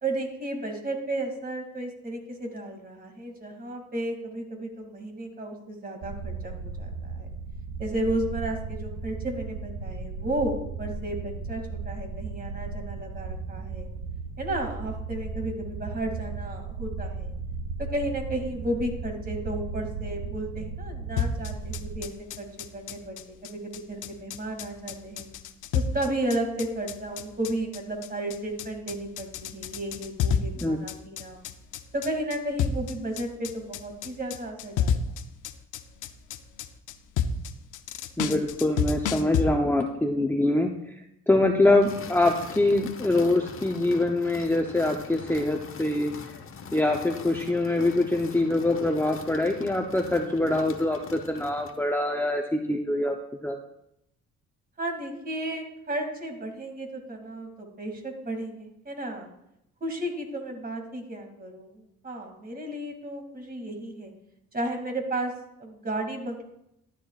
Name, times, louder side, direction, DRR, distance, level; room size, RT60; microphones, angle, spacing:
voice 1, 0.0-7.3 7.8-13.9 14.4-17.3 17.8-22.5 22.7-25.3 25.7-31.4 31.9-35.0 54.8-59.3 59.8-64.1 64.5-65.3 65.6-66.4, right 1 dB, 30° right, 3 dB, 2.5 m, -33 dB
sound 1, 6.0-22.0, right 4 dB, 75° right, 1.2 m, -36 dB
sound 2, 21.2-39.4, left 6 dB, 85° left, 0.7 m, -30 dB
voice 2, 38.2-40.7 41.3-46.1 46.7-53.2 53.4-53.6, left 2 dB, 5° left, 2 dB, 0.8 m, -24 dB
sound 3, 41.8-51.8, left 5 dB, 45° left, 1.1 m, -43 dB
13.0 x 11.5 x 2.4 m, 0.81 s
cardioid pair, 90°, 30 cm